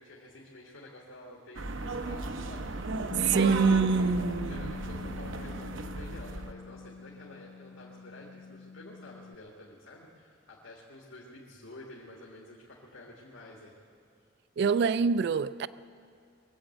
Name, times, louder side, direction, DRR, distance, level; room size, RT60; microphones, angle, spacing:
voice 1, 0.0-2.7 3.3-13.8, left 1 dB, 80° left, 1.8 m, -50 dB
sound 1, 1.5-6.5, right 2 dB, 80° right, 0.8 m, -35 dB
Bass guitar, 3.1-9.4, left 4 dB, 45° left, 0.3 m, -42 dB
voice 2, 3.2-4.7 14.6-15.7, right 5 dB, 60° right, 0.3 m, -25 dB
21.5 x 8.1 x 7.8 m
head